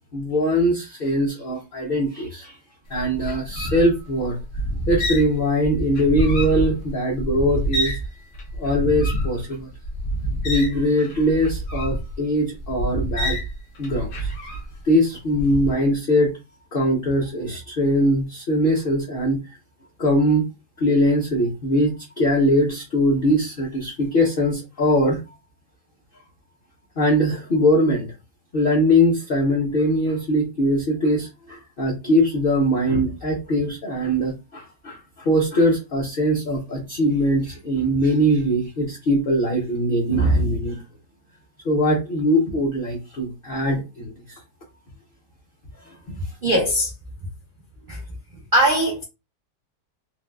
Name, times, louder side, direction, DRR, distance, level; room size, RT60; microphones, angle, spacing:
voice 1, 0.1-2.6 2.9-4.4 4.9-8.0 8.6-9.7 10.4-13.4 13.8-14.3 14.8-16.3 16.7-19.4 20.0-20.5 20.8-25.2 27.0-28.1 28.5-40.8 41.6-44.4 45.8-45.9, equal, 45° left, 0.7 m, -21 dB
sound 1, 2.9-8.1 8.3-14.9 15.3-15.7, right 1 dB, 65° left, 1.2 m, -27 dB
voice 2, 46.4-46.9 47.9-48.0 48.5-49.0, right 1 dB, 60° right, 0.5 m, -20 dB
3.9 x 2.3 x 2.3 m
omnidirectional pair, 1.9 m